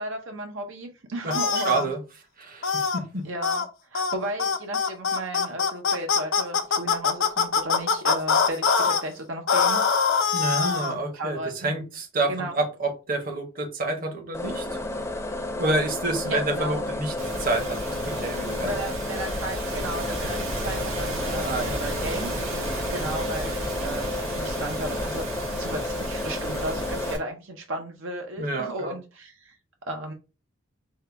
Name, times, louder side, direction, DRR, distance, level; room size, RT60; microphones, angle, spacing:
voice 1, 0.0-1.9 3.2-3.6 3.9-9.8 10.1-10.3 10.8-11.7 12.3-12.5 16.3-16.8 18.6-22.3 22.9-25.2 25.5-29.6 29.9-30.1, right 1 dB, 70° right, 3 dB, 0.7 m, -34 dB
voice 2, 1.2-2.0 2.4-3.3 10.3-14.7 15.6-17.1 17.4-18.8 20.2-20.3 21.4-21.8 28.4-29.0, right 2 dB, 45° right, 3 dB, 1.0 m, -28 dB
sound 1, 1.3-1.8 2.6-3.0 3.4-3.7 3.9-4.1 4.4-9.0 9.5-10.9, left 5 dB, 70° left, 0.6 m, -23 dB
sound 2, 14.3-27.1, left 2 dB, 15° left, 0.6 m, -32 dB
sound 3, 17.2-27.2, right 1 dB, 85° right, 1.3 m, -34 dB
5.4 x 2.2 x 3.3 m, 0.31 s
head